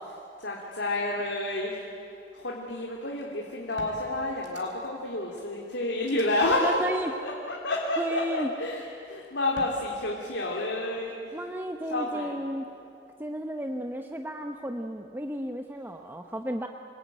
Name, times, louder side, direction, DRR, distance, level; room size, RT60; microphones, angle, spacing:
voice 1, 0.1-1.7 2.3-6.7 7.2-11.3 11.9-12.4, left 2 dB, 75° left, -2 dB, 2.9 m, -30 dB
sound 1, 3.2-3.3 3.8-5.0 5.4-5.5 6.0-6.2 7.6-8.0 9.5-9.7, right 1 dB, 80° right, 4.2 m, -47 dB
voice 2, 6.6-7.1 8.0-8.5 11.3-12.7 13.2-16.7, equal, 10° right, 4 dB, 0.9 m, -33 dB
27.5 x 21.0 x 9.2 m, 2.6 s
head